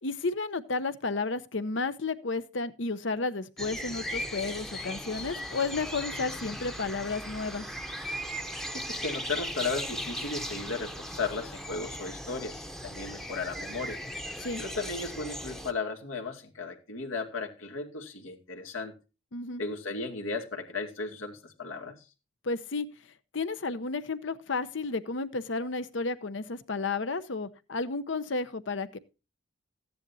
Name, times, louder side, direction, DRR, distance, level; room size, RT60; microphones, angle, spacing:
voice 1, 0.0-7.7 14.4-14.6 19.3-19.6 22.4-22.9 23.3-29.0, left 3 dB, 65° left, 0.8 m, -32 dB
sound 1, 3.6-15.7, equal, ahead, 0.8 m, -38 dB
voice 2, 8.7-14.0 14.6-18.9 19.6-21.9, left 4 dB, 85° left, 2.2 m, -35 dB
14.5 x 10.5 x 2.7 m
head